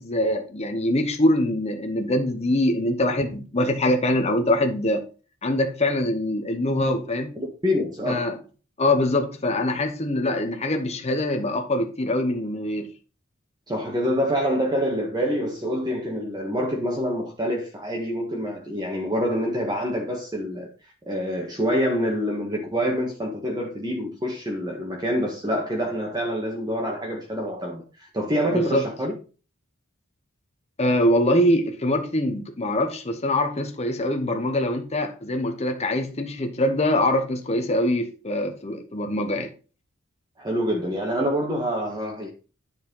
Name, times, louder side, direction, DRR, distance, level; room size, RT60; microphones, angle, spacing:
voice 1, 0.0-5.0 5.4-7.3 8.1-8.4 8.8-12.9 28.5-28.8 30.8-39.5, left 1 dB, 30° left, 1.0 m, -23 dB
voice 2, 7.3-8.3 13.7-20.7 21.1-29.1 40.4-42.3, equal, 20° right, 1.6 m, -26 dB
10.5 x 4.6 x 5.4 m
head